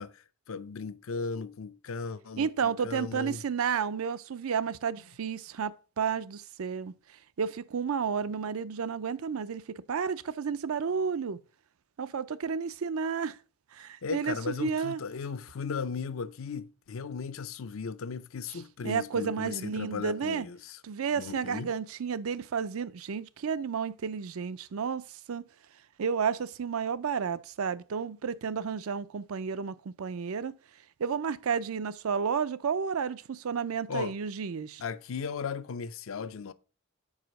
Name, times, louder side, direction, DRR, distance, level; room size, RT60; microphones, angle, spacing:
voice 1, 0.0-3.4 14.0-20.8 21.1-21.7 33.9-34.1 34.8-36.5, left 5 dB, 70° left, 0.5 m, -36 dB
voice 2, 2.4-6.9 7.4-9.6 9.9-11.4 12.0-13.4 13.7-15.0 18.5-20.5 20.8-25.5 26.0-30.5 31.0-34.8, right 6 dB, 80° right, 0.5 m, -32 dB
5.0 x 4.9 x 6.2 m
head